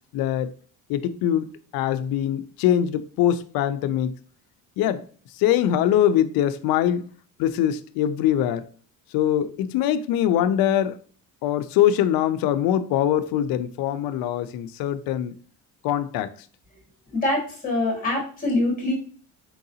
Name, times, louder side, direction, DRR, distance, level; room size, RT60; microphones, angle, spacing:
voice 1, 0.1-0.5 0.9-4.2 4.8-5.0 5.4-7.1 7.4-8.7 9.1-11.0 11.4-15.4 15.8-16.3, left 10 dB, 80° left, 0.5 m, -23 dB
voice 2, 17.1-18.9, left 2 dB, 25° left, 2.0 m, -24 dB
4.6 x 3.8 x 2.7 m
cardioid pair, 140°, 35 cm